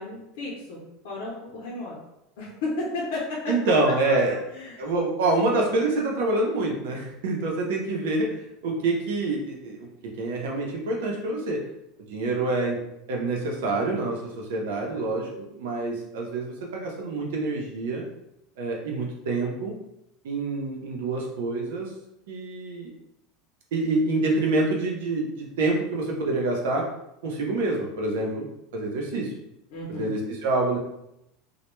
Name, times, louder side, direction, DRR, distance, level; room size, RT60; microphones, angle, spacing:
voice 1, 0.0-2.0 2.4-4.1 4.5-4.8 29.7-30.2, left 2 dB, 75° left, -5 dB, 0.7 m, -33 dB
voice 2, 3.5-4.4 4.8-11.6 12.1-12.8 13.1-15.3 15.5-18.0 18.6-19.7 20.2-21.9 22.3-22.9 23.7-26.9 27.2-29.3 29.9-30.8, right 2 dB, 85° right, 0 dB, 0.7 m, -26 dB
2.2 x 2.2 x 3.0 m, 0.83 s
supercardioid pair, 170°, 0 cm